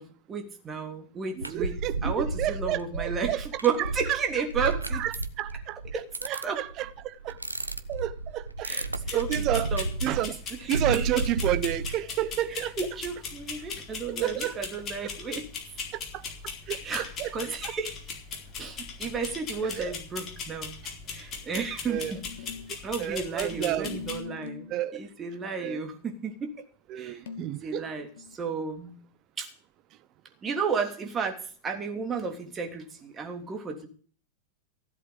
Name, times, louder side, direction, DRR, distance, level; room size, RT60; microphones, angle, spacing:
voice 1, 0.0-5.0 5.9-6.0 6.4-6.6 8.6-8.9 9.1-9.3 9.7-9.9 10.6-11.1 12.5-15.5 16.8-18.0 18.6-20.7 21.1-22.5 22.8-26.6 27.0-27.2 27.5-29.0 29.4-29.5 30.4-33.9, right 5 dB, 20° right, 3.2 m, -33 dB
voice 2, 1.4-3.4 3.8-4.2 4.6-7.4 7.9-8.7 9.1-9.7 10.0-10.4 10.7-12.8 14.1-14.6 15.9-16.2 16.7-16.8 17.2-17.7 19.7-19.9 21.5-22.1 23.0-24.0 24.7-25.0 25.6-25.8 26.9-27.8, right 13 dB, 35° right, 1.0 m, -31 dB
sound 1, 1.4-12.0, right 3 dB, 85° right, 0.9 m, -32 dB
sound 2, 9.1-24.2, left 5 dB, 30° left, 4.1 m, -39 dB
sound 3, 22.0-22.8 23.8-24.8 27.3-28.4, left 6 dB, 60° left, 1.7 m, -42 dB
16.0 x 8.2 x 6.9 m
figure-of-eight pair, 90°, 0 cm